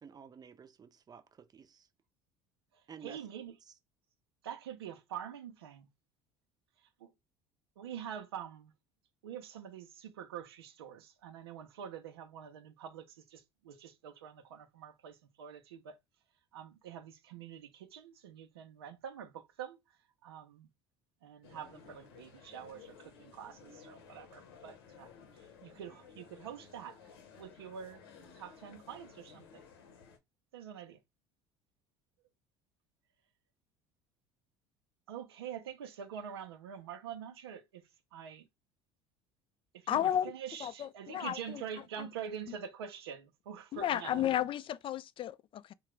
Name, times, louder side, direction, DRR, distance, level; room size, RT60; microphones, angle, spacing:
voice 1, 0.0-1.9 2.9-3.2 3.6-3.7, right 6 dB, 30° right, 0.6 m, -52 dB
voice 2, 2.7-3.5 4.4-5.9 6.8-7.1 7.8-8.7 9.2-16.0 16.5-19.8 20.2-20.7 21.2-27.0 27.4-28.0 28.3-29.6 30.5-31.0 35.1-38.5 39.7-44.3, right 8 dB, 90° right, 0.6 m, -46 dB
sound 1, 21.4-30.2, left 6 dB, 85° left, 0.8 m, -56 dB
voice 3, 39.9-40.3 40.6-41.6 43.7-45.7, left 11 dB, 45° left, 0.4 m, -33 dB
3.7 x 2.3 x 3.1 m
hypercardioid pair, 70°, 13 cm